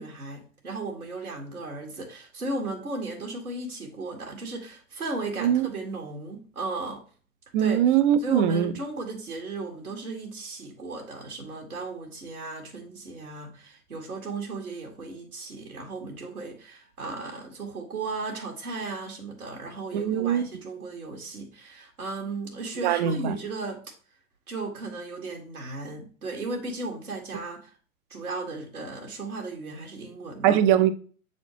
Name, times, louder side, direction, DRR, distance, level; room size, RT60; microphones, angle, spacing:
voice 1, 0.0-7.0 7.6-7.8 8.2-23.8 24.5-27.7 28.1-30.6, right 3 dB, 85° right, 1.9 m, -35 dB
voice 2, 7.5-8.7 19.9-20.5 22.8-23.3 30.4-30.9, right 10 dB, 35° right, 0.7 m, -22 dB
8.1 x 4.2 x 3.0 m
figure-of-eight pair, 105°, 43 cm